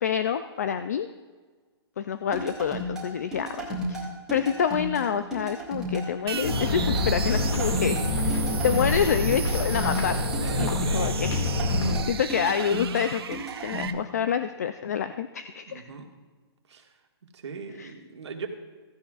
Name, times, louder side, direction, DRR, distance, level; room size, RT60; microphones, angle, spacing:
voice 1, 0.0-1.1 2.0-11.5 12.1-15.8 17.8-17.9, left 8 dB, 35° left, 11 dB, 0.3 m, -28 dB
sound 1, 2.3-13.9, equal, 5° right, 1.7 m, -34 dB
sound 2, 6.3-13.9, right 8 dB, 65° right, 0.6 m, -36 dB
sound 3, 6.4-12.0, left 2 dB, 75° left, 2.1 m, -27 dB
voice 2, 10.4-11.3 15.7-16.1 16.7-16.8 17.4-18.5, right 5 dB, 85° right, 2 dB, 1.8 m, -38 dB
15.5 x 14.0 x 2.4 m, 1.4 s
hypercardioid pair, 175°, 14 cm